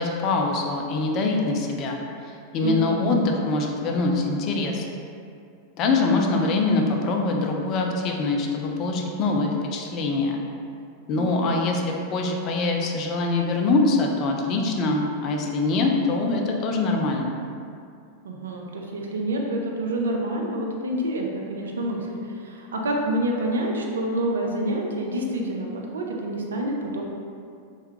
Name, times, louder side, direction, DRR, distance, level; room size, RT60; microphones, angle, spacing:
voice 1, 0.0-4.9 5.8-10.4 11.1-17.4, left 3 dB, 35° left, 1 dB, 0.4 m, -24 dB
voice 2, 2.6-3.0 11.1-11.6 18.2-27.0, right 1 dB, 65° right, 0 dB, 0.4 m, -28 dB
3.3 x 2.3 x 3.0 m, 2.4 s
figure-of-eight pair, 90°, 0 cm